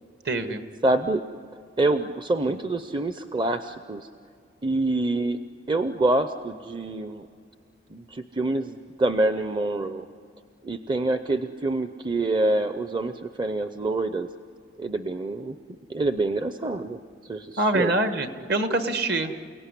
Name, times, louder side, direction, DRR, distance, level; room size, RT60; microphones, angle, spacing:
voice 1, 0.3-0.6 17.6-19.3, right 2 dB, 55° right, 7 dB, 1.6 m, -25 dB
voice 2, 0.8-1.2 1.8-4.1 4.6-5.4 5.7-7.3 7.9-10.0 10.6-14.3 14.8-15.6 15.9-17.9, right 2 dB, 25° right, 9 dB, 0.6 m, -26 dB
29.5 x 17.5 x 9.9 m, 2.3 s
head